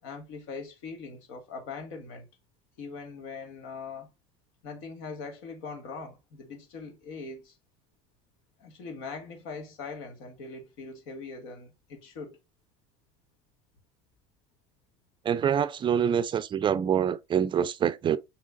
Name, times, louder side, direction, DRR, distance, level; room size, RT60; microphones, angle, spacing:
voice 1, 0.0-2.3 2.8-4.1 4.6-7.5 8.6-12.4, left 4 dB, 70° left, 1.7 m, -41 dB
voice 2, 15.2-18.2, right 8 dB, 35° right, 0.4 m, -25 dB
6.2 x 3.3 x 2.4 m
hypercardioid pair, 80°, 15 cm